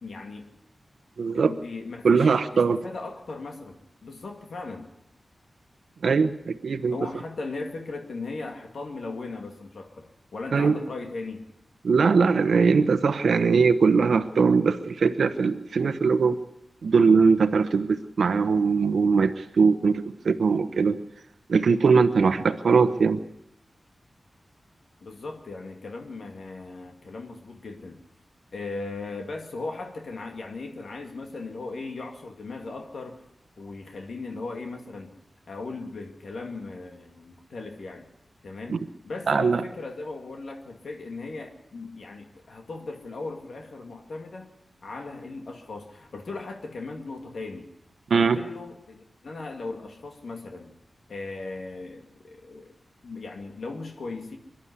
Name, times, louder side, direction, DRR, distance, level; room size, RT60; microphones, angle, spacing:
voice 1, 0.0-0.5 1.3-4.9 6.9-11.5 25.0-28.0 28.5-33.2 33.6-35.1 35.5-38.1 38.4-44.5 44.8-47.7 48.1-50.7 51.1-52.7 53.0-54.4, left 3 dB, 75° left, 3 dB, 2.4 m, -38 dB
voice 2, 1.2-1.5 2.0-2.8 6.0-6.9 10.5-10.8 11.8-16.4 16.8-21.0 21.5-23.2 38.7-38.8 39.3-39.6 48.1-48.4, right 5 dB, 90° right, 10 dB, 0.9 m, -21 dB
24.0 x 11.5 x 9.7 m, 0.79 s
wide cardioid pair, 120°, 0 cm